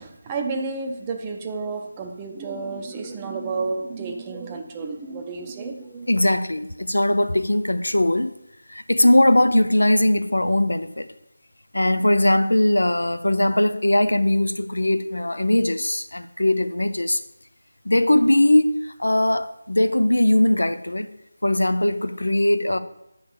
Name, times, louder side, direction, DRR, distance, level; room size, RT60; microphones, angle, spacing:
voice 1, 0.0-6.1, right 4 dB, 15° right, 0.6 m, -31 dB
voice 2, 6.1-8.3 8.7-11.1 11.7-17.2 17.8-21.1 21.4-22.8, left 1 dB, 90° left, 0.6 m, -20 dB
8.1 x 3.9 x 6.9 m
figure-of-eight pair, 165°, 0 cm